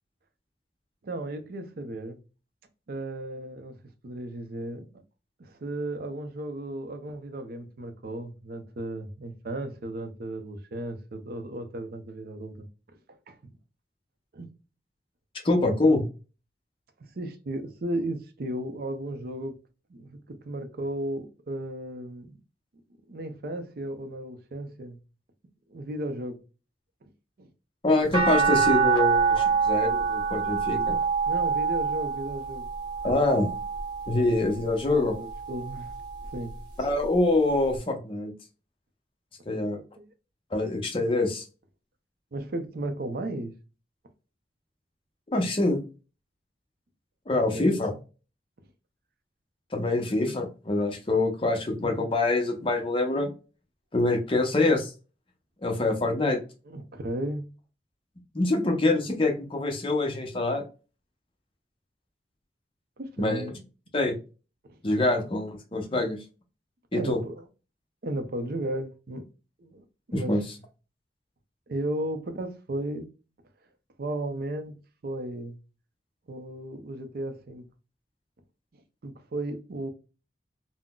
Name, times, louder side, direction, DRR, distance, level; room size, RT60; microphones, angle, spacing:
voice 1, 1.0-2.2 2.9-4.9 5.4-12.7 13.1-13.5 14.3-14.5 17.0-19.5 19.9-22.4 23.1-25.0 25.7-26.4 27.0-27.1 27.4-27.5 30.5-30.6 31.3-32.7 34.9-35.9 36.3-36.5 40.0-40.1 42.3-43.5 47.3-47.8 56.7-57.5 63.0-63.6 64.6-65.0 66.9-67.5 68.0-69.3 69.6-70.4 71.7-73.1 74.0-75.6 76.3-77.6 78.7-79.9, right 1 dB, 55° right, 0.5 m, -35 dB
voice 2, 15.4-16.0 27.8-31.0 33.0-33.5 34.1-35.1 36.8-38.3 39.5-39.8 40.5-41.4 45.3-45.8 47.3-47.9 49.7-53.3 53.9-54.9 55.6-56.4 58.3-60.6 63.2-63.5 63.9-64.2 64.8-66.2 66.9-67.2 70.1-70.4, left 2 dB, 30° left, 0.6 m, -25 dB
sound 1, 28.1-34.4 35.0-36.4 37.8-37.9, right 6 dB, 25° right, 1.0 m, -26 dB
3.7 x 2.0 x 2.2 m
head